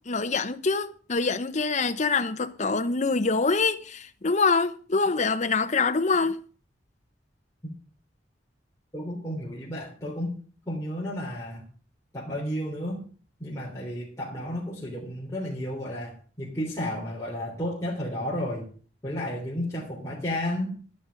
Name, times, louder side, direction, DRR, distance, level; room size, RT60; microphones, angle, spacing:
voice 1, 0.1-6.4, left 4 dB, 40° left, 0.9 m, -25 dB
voice 2, 8.9-10.3 10.7-11.6 12.1-13.0 13.4-18.7 19.0-20.7, left 1 dB, 15° left, 3.4 m, -32 dB
11.5 x 10.0 x 5.3 m
head